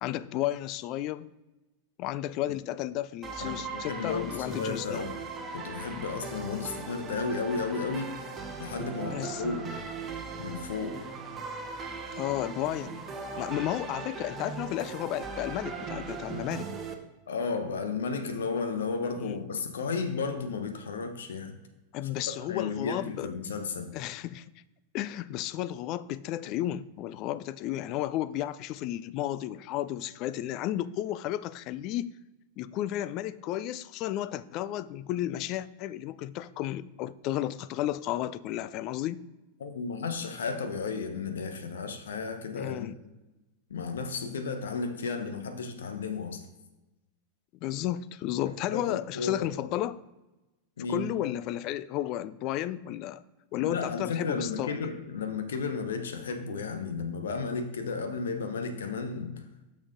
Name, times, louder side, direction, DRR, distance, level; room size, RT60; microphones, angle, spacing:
voice 1, 0.0-1.3 2.0-5.1 6.5-6.7 9.1-9.4 12.2-13.1 13.4-16.7 19.2-19.3 21.9-23.3 23.9-24.4 24.9-32.1 32.6-39.2 42.5-42.9 47.6-50.0 50.9-53.2 53.5-54.7, left 13 dB, 40° left, 17 dB, 0.4 m, -33 dB
sound 1, 3.2-16.9, right 4 dB, 20° right, 1.1 m, -39 dB
voice 2, 3.4-5.2 5.5-8.2 8.6-9.8 10.3-11.0 17.3-21.5 22.0-23.9 39.6-42.9 43.7-46.5 48.4-49.4 50.8-51.1 53.6-59.4, left 4 dB, 65° left, 7 dB, 1.0 m, -33 dB
6.2 x 6.0 x 3.9 m, 1.1 s
figure-of-eight pair, 90°, 0 cm